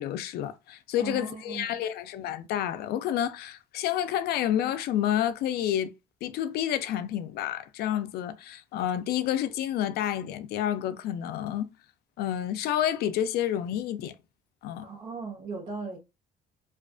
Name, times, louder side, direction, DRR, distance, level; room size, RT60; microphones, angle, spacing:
voice 1, 0.0-5.9 6.2-11.7 12.2-14.1 14.6-14.9, left 11 dB, 70° left, 0.4 m, -29 dB
voice 2, 1.0-1.8 14.8-16.0, right 4 dB, 50° right, 1.0 m, -38 dB
2.4 x 2.4 x 2.3 m
cardioid pair, 110°, 17 cm